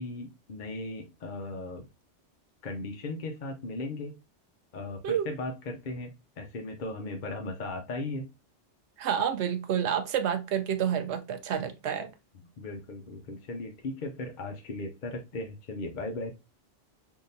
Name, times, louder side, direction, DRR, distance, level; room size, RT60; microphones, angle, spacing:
voice 1, 0.0-1.9 2.6-4.1 4.7-8.3 12.6-16.3, left 2 dB, 50° left, 0.7 m, -37 dB
voice 2, 9.0-12.1, right 8 dB, 70° right, 0.8 m, -29 dB
3.7 x 2.6 x 2.6 m
omnidirectional pair, 1.2 m